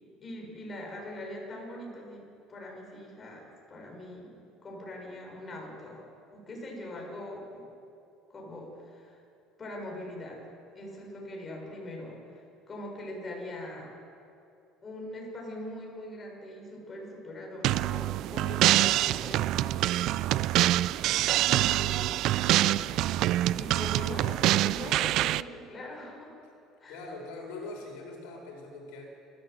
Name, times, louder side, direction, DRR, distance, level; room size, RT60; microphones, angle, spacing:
voice 1, 0.2-2.2 2.5-4.3 4.6-6.0 6.3-7.6 8.3-9.2 9.6-10.4 10.7-13.9 14.8-20.4 21.5-23.0 23.6-26.3 26.8-27.0, left 1 dB, 20° left, -1 dB, 5.8 m, -42 dB
sound 1, 17.6-25.4, right 14 dB, 55° right, 0.4 m, -25 dB
voice 2, 26.9-29.0, left 2 dB, 90° left, 1 dB, 5.5 m, -42 dB
27.0 x 14.0 x 7.7 m, 2.7 s
cardioid pair, 150°, 0 cm